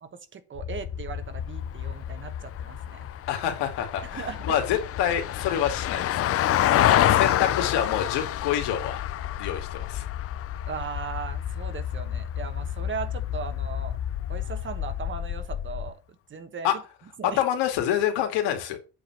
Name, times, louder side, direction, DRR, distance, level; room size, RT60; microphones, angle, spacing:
voice 1, 0.0-3.1 4.1-4.4 6.7-7.3 10.7-14.0 14.3-16.0 16.3-16.7 17.2-17.4, right 6 dB, 30° right, 10 dB, 1.1 m, -37 dB
sound 1, 0.5-15.9, left 9 dB, 55° left, 3.1 m, -35 dB
Vehicle, 1.5-12.0 14.3-14.4, left 13 dB, 35° left, 0.4 m, -27 dB
voice 2, 3.3-6.3 7.1-9.0 9.4-10.0 16.6-16.7 17.2-18.8, left 10 dB, 85° left, 5 dB, 2.5 m, -27 dB
8.5 x 4.8 x 6.0 m, 0.32 s
cardioid pair, 150°, 40 cm